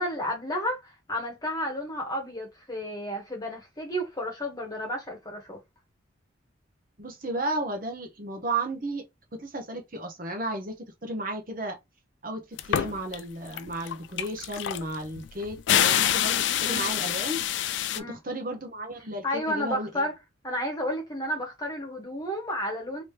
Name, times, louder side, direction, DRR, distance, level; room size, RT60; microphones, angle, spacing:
voice 1, 0.0-5.6 16.6-16.9 17.9-18.2 19.2-20.1 20.4-23.0, equal, 20° left, 1.2 m, -32 dB
voice 2, 7.0-9.1 9.3-11.8 12.2-17.4 17.9-20.0, right 1 dB, 45° right, 0.9 m, -33 dB
sound 1, 12.6-13.2 13.5-18.0, left 10 dB, 65° left, 0.3 m, -26 dB
3.1 x 2.8 x 3.3 m
head